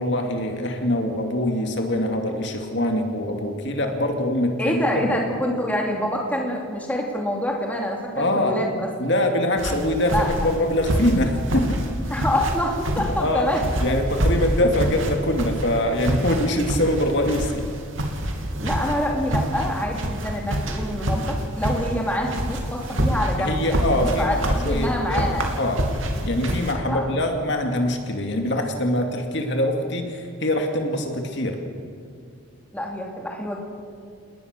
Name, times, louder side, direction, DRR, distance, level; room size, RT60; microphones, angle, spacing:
voice 1, 0.0-5.1 8.2-8.6 9.0-11.8 13.2-13.5 13.8-17.6 23.4-25.3 25.6-25.8 26.2-31.6, left 1 dB, 55° left, 3 dB, 2.4 m, -23 dB
voice 2, 4.6-8.9 10.0-10.5 12.1-13.6 18.6-25.5 26.9-27.1 32.7-33.6, left 1 dB, 5° left, 0 dB, 2.8 m, -26 dB
sound 1, 9.6-26.7, equal, 65° right, 3.0 m, -27 dB
29.0 x 20.0 x 6.7 m, 2.2 s
head